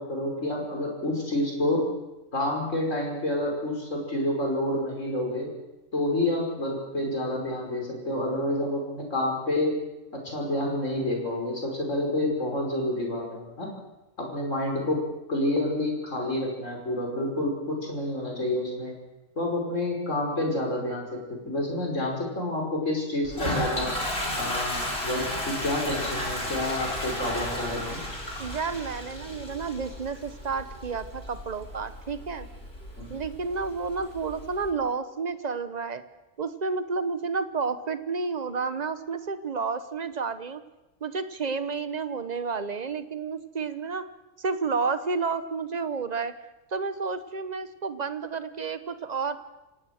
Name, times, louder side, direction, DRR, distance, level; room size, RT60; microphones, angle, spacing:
voice 1, 0.0-1.8 2.3-5.5 5.9-9.8 10.1-13.7 14.2-15.0 15.3-18.9 19.4-24.0 24.3-28.0 33.0-33.1, left 1 dB, 70° left, 1 dB, 5.9 m, -29 dB
Toilet flush, 23.2-34.7, left 1 dB, 50° left, 4.7 m, -34 dB
voice 2, 28.4-32.5 33.1-36.0 36.4-40.6 41.0-44.0 44.4-46.3 46.7-49.4, right 4 dB, 35° right, 11 dB, 1.1 m, -31 dB
26.5 x 17.5 x 6.6 m, 0.99 s
omnidirectional pair, 1.3 m